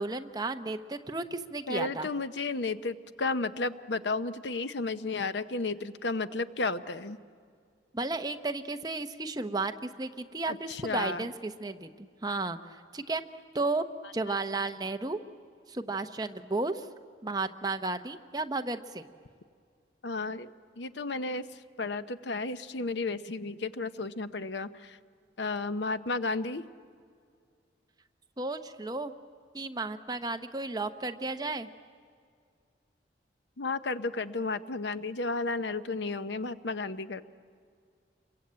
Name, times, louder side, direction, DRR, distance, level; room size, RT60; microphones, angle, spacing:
voice 1, 0.0-2.1 7.9-13.2 13.5-13.8 14.1-15.2 15.7-16.9 17.2-19.1 28.4-29.1 29.5-31.7, right 3 dB, 20° right, 7 dB, 0.8 m, -33 dB
voice 2, 1.7-7.2 10.5-11.3 14.3-14.4 20.0-25.0 25.4-26.6 33.6-37.2, left 3 dB, 75° left, 12 dB, 0.8 m, -33 dB
27.5 x 23.0 x 8.7 m, 2.2 s
head